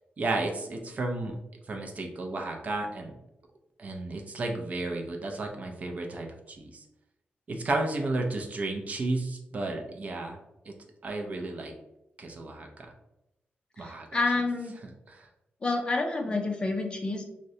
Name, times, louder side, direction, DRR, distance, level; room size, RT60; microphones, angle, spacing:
voice 1, 0.2-1.4 1.6-3.1 3.8-6.8 7.5-10.4 10.6-10.7 11.0-11.7 12.2-12.9 13.8-14.1 14.8-15.3, right 2 dB, 40° right, 2 dB, 0.5 m, -33 dB
voice 2, 13.8-14.7 15.6-17.2, left 3 dB, 25° left, 2 dB, 0.4 m, -29 dB
3.6 x 2.1 x 2.7 m, 0.90 s
wide cardioid pair, 150°, 4 cm